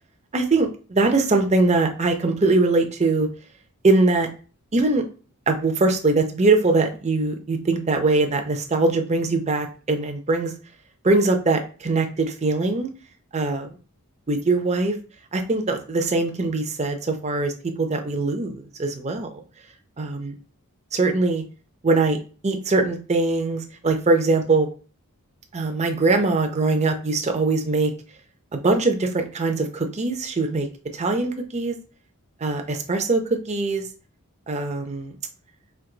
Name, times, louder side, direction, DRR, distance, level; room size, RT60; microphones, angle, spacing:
voice 1, 0.3-3.3 3.8-4.3 4.7-5.0 5.5-10.5 11.0-12.9 13.3-13.7 14.3-14.9 15.3-19.3 20.0-20.3 20.9-21.4 21.8-24.7 25.5-27.9 28.5-30.7 30.9-31.8 32.4-33.9 34.5-35.1, right 3 dB, 30° right, 5 dB, 0.6 m, -22 dB
4.6 x 2.8 x 3.8 m, 0.37 s
head